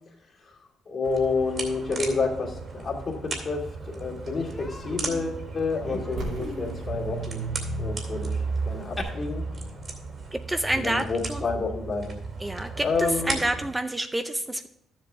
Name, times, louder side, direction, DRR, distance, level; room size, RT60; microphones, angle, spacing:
voice 1, 0.9-7.5 7.8-8.4 8.6-9.4 10.7-12.2 12.8-13.4, left 4 dB, 50° left, -2 dB, 2.3 m, -29 dB
sound 1, 1.0-13.7, right 3 dB, 45° right, 2.4 m, -34 dB
Human voice, 3.5-3.6 3.9-4.1 4.5-9.0, left 2 dB, 20° left, 1.8 m, -41 dB
sound 2, 6.2-11.9, right 1 dB, 85° right, 2.5 m, -42 dB
voice 2, 10.3-11.4 12.4-14.7, right 1 dB, 10° right, 8 dB, 0.5 m, -28 dB
12.0 x 7.4 x 3.5 m, 0.77 s
cardioid pair, 90°, 0 cm